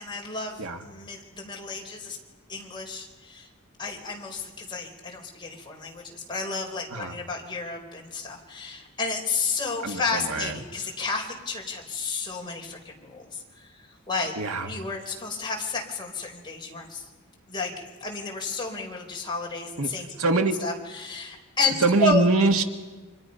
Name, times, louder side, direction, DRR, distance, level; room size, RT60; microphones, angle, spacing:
voice 1, 0.0-2.2 2.5-3.5 3.8-13.7 14.1-14.3 14.7-17.1 17.5-17.7 18.0-20.1 20.6-22.2, left 3 dB, 20° left, 0 dB, 4.5 m, -31 dB
voice 2, 9.8-10.6 14.4-14.7 19.8-19.9 20.2-20.5 21.8-22.6, right 3 dB, 85° right, 5 dB, 1.9 m, -23 dB
30.0 x 26.0 x 5.6 m, 1.3 s
head